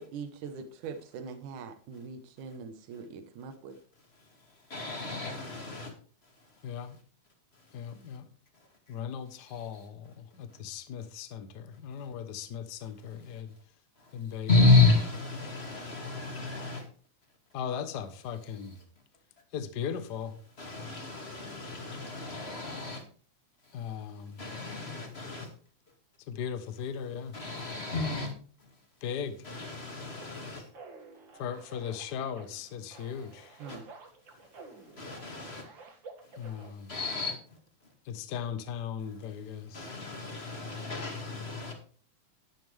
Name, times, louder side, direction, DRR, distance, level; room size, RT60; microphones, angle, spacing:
voice 1, 0.0-3.8 33.6-33.9, right 5 dB, 85° right, 8 dB, 2.6 m, -42 dB
voice 2, 4.2-5.9 6.2-7.0 7.5-8.2 8.5-9.0 9.4-9.9 10.5-10.6 13.0-13.4 14.0-16.9 18.5-18.8 20.6-23.0 23.6-25.5 27.3-28.3 28.6-28.8 29.4-30.7 32.9-33.2 33.7-33.8 34.3-35.7 36.2-37.9 39.0-41.7, left 3 dB, 20° left, 3 dB, 2.1 m, -32 dB
voice 3, 6.6-7.0 7.7-8.3 8.9-13.5 14.1-14.5 17.5-18.8 19.5-20.4 23.7-24.4 26.3-27.4 29.0-29.4 31.4-33.6 36.4-36.9 38.0-39.9, left 7 dB, 90° left, 10 dB, 0.9 m, -38 dB
sound 1, 30.2-36.7, right 4 dB, 45° right, 2.3 m, -51 dB
12.0 x 11.0 x 3.3 m, 0.41 s
omnidirectional pair, 3.4 m